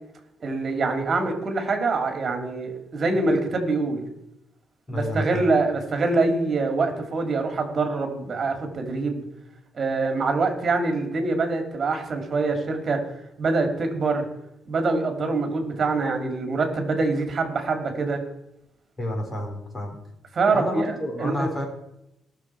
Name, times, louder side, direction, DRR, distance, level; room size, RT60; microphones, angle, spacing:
voice 1, 0.4-4.0 4.9-9.2 9.7-13.0 13.4-14.2 14.7-18.2 20.3-20.9 21.2-21.5, right 3 dB, 45° right, 5 dB, 3.1 m, -24 dB
voice 2, 4.9-5.4 19.0-20.0 20.5-21.6, left 1 dB, 25° left, 1 dB, 4.6 m, -30 dB
19.5 x 6.7 x 4.8 m, 0.83 s
cardioid pair, 90°, 0 cm